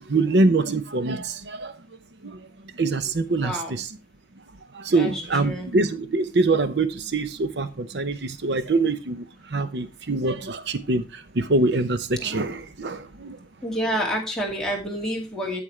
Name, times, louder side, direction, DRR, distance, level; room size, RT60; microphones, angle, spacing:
voice 1, 0.0-1.7 2.2-2.5 2.7-3.9 4.7-13.4, right 3 dB, 75° right, 0.7 m, -24 dB
voice 2, 3.4-3.8 4.9-5.7 12.2-12.4 13.6-15.6, equal, 5° left, 2.4 m, -29 dB
8.8 x 8.6 x 3.2 m
head